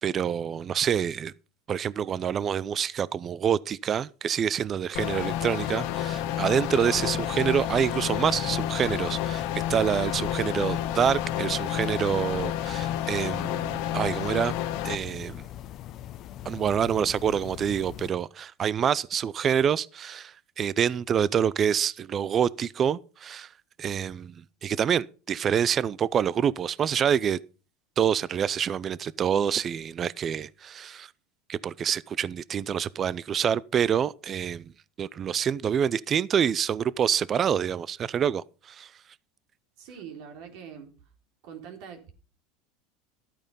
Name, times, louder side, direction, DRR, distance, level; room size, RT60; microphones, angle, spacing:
voice 1, 0.0-1.3 1.7-14.5 14.8-15.4 16.4-23.5 23.8-24.4 24.6-27.4 28.0-31.1 31.5-34.7 35.0-38.9, right 8 dB, 35° right, 0.5 m, -27 dB
sound 1, 5.0-15.0, left 12 dB, 65° left, 1.3 m, -30 dB
sound 2, 5.0-18.1, left 11 dB, 50° left, 0.8 m, -41 dB
voice 2, 39.8-40.9 41.4-42.1, right 7 dB, 65° right, 3.9 m, -44 dB
13.0 x 8.9 x 5.5 m
hypercardioid pair, 100°, 0 cm